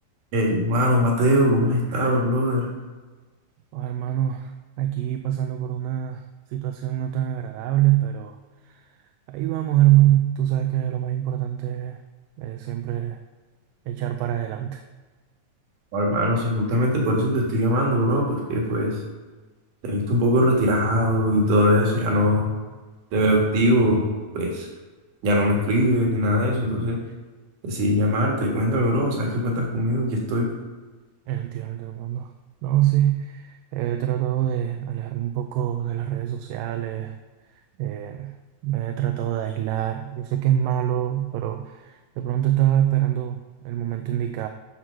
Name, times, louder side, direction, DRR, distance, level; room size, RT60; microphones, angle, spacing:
voice 1, 0.3-2.7 15.9-19.0 19.8-22.5 23.1-24.0 24.3-24.7 25.2-27.0 27.6-30.5, equal, 65° right, -1 dB, 3.1 m, -21 dB
voice 2, 3.7-6.2 6.5-8.4 8.6-8.9 9.3-12.0 12.4-13.2 13.9-14.8 31.3-32.3 32.6-37.2 37.8-38.4 38.6-44.5, right 12 dB, 80° right, 6 dB, 2.2 m, -24 dB
10.0 x 4.5 x 6.3 m, 1.3 s
omnidirectional pair, 4.0 m